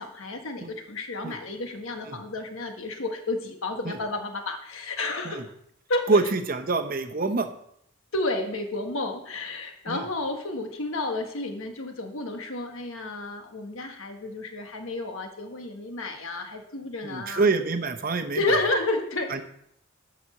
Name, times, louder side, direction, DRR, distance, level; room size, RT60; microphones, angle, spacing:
voice 1, 0.0-5.5 5.9-6.2 8.1-17.5 18.3-19.3, left 2 dB, 75° left, 5 dB, 1.4 m, -31 dB
voice 2, 6.1-7.5 9.9-10.0 17.0-18.4 19.3-19.4, right 3 dB, 40° right, 8 dB, 0.8 m, -26 dB
11.0 x 4.3 x 6.5 m, 0.72 s
head